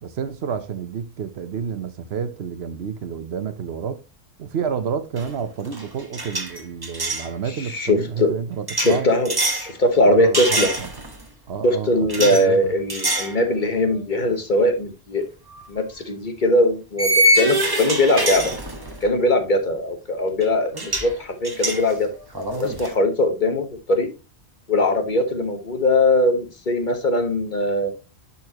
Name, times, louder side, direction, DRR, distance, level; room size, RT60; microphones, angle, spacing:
voice 1, 0.0-4.0 4.4-9.1 10.0-10.9 11.5-12.7, right 7 dB, 70° right, 1.0 m, -29 dB
sound 1, 5.2-5.4 5.6-7.3 8.7-9.7 10.3-11.2 12.1-12.4 12.9-13.4 13.8-14.0 15.5-15.6 17.0-19.1 20.4-20.5 20.7-21.1 21.4-22.9, right 1 dB, 20° right, 1.3 m, -24 dB
voice 2, 7.7-8.3 8.8-10.7 11.6-15.2 15.7-18.5 19.0-20.7 21.0-22.1 22.6-24.1 24.7-27.9, left 1 dB, 45° left, 1.2 m, -20 dB
10.5 x 4.3 x 2.9 m
omnidirectional pair, 1.1 m